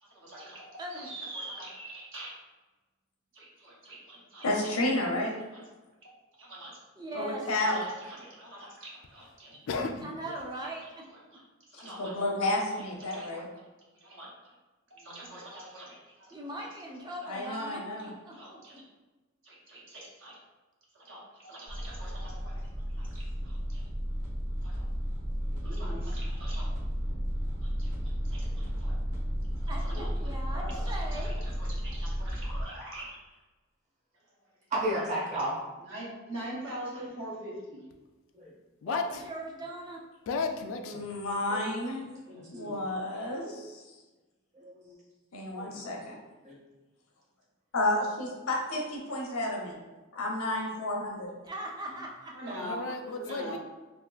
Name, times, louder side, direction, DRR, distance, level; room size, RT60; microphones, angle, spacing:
voice 1, 0.0-2.3 3.3-4.5 5.5-5.6 6.0-6.7 7.1-10.0 10.5-10.7 11.1-12.2 12.8-13.4 13.9-14.3 14.9-16.7 17.0-17.5 18.3-18.8 19.4-20.4 20.9-23.8 24.6-24.8 25.4-26.7 27.6-29.0 29.6-33.2 35.3-35.4 35.8-37.8 42.3-42.7 51.8-52.0 52.3-52.8 53.1-53.6, right 1 dB, 65° right, -3 dB, 0.9 m, -44 dB
voice 2, 4.4-5.3 7.1-7.8 11.7-13.5 17.3-18.1 40.8-42.0 42.5-43.9 45.3-46.2 47.7-49.8 50.1-51.3, left 1 dB, 90° left, -1 dB, 0.8 m, -31 dB
voice 3, 7.0-7.4 10.0-11.0 16.3-18.8 29.7-31.3 38.8-40.0 51.4-52.5 52.8-52.9, right 1 dB, 20° right, -1 dB, 0.4 m, -40 dB
voice 4, 9.7-10.1 38.8-39.1 40.3-41.1 52.6-53.6, left 4 dB, 65° left, 5 dB, 0.3 m, -33 dB
sound 1, 21.7-32.6, equal, 80° right, 1.2 m, -33 dB
voice 5, 34.7-35.6 38.3-38.5 41.5-41.6 43.1-43.2 44.5-44.9 45.6-46.0 46.4-46.6, right 1 dB, 35° right, -4 dB, 1.0 m, -33 dB
3.5 x 2.5 x 2.3 m, 1.2 s
head